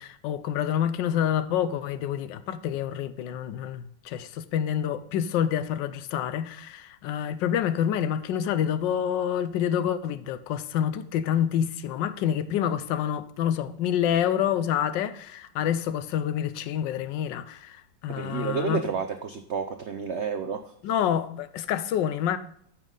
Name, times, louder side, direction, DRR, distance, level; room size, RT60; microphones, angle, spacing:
voice 1, 0.0-18.9 20.8-22.4, left 9 dB, 75° left, 1.3 m, -27 dB
voice 2, 18.1-20.7, right 6 dB, 80° right, 0.6 m, -30 dB
13.5 x 5.7 x 3.8 m
omnidirectional pair, 2.0 m